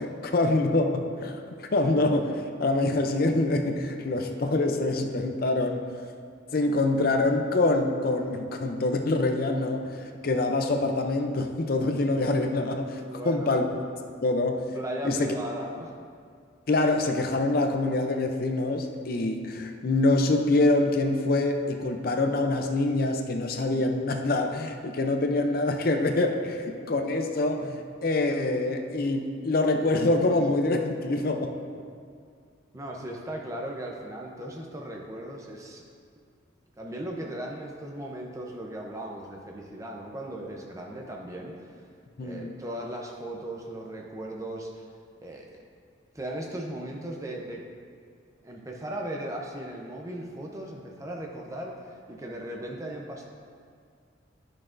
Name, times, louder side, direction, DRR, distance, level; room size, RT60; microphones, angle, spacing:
voice 1, 0.0-5.8 6.5-13.7 14.2-14.7 15.0-15.3 16.7-31.6 42.2-42.5, left 2 dB, 50° left, 4 dB, 0.5 m, -25 dB
voice 2, 13.0-13.6 14.7-16.0 32.7-35.8 36.7-41.9 42.2-44.9 45.2-45.5 46.1-47.6 48.4-53.2, right 1 dB, 15° right, 0 dB, 0.6 m, -37 dB
10.5 x 6.1 x 2.5 m, 2.2 s
head